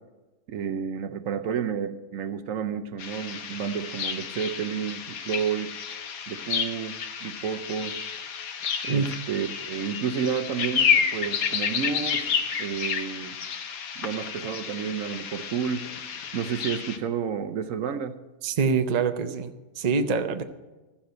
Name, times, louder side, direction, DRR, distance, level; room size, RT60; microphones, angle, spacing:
voice 1, 0.5-5.7 6.3-7.9 8.8-12.3 12.6-13.4 14.0-15.9 16.3-18.1, right 7 dB, 65° right, 10 dB, 1.0 m, -31 dB
sound 1, 3.0-17.0, left 7 dB, 70° left, 1.3 m, -30 dB
voice 2, 18.4-20.4, right 5 dB, 45° right, 8 dB, 0.5 m, -25 dB
13.5 x 7.3 x 7.9 m, 1.2 s
omnidirectional pair, 1.6 m